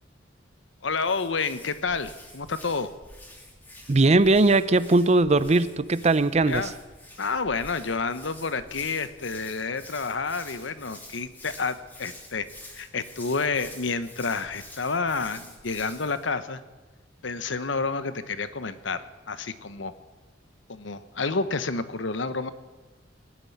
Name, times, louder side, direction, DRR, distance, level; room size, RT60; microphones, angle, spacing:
voice 1, 0.8-2.9 6.5-6.7 7.2-12.5 12.8-16.6 17.2-19.9 20.7-22.5, left 4 dB, 70° left, 12 dB, 1.0 m, -29 dB
Hands, 0.8-16.3, left 1 dB, 10° left, 2.5 m, -48 dB
voice 2, 3.9-6.7, right 2 dB, 35° right, 15 dB, 0.6 m, -20 dB
19.5 x 7.6 x 9.5 m, 1.2 s
head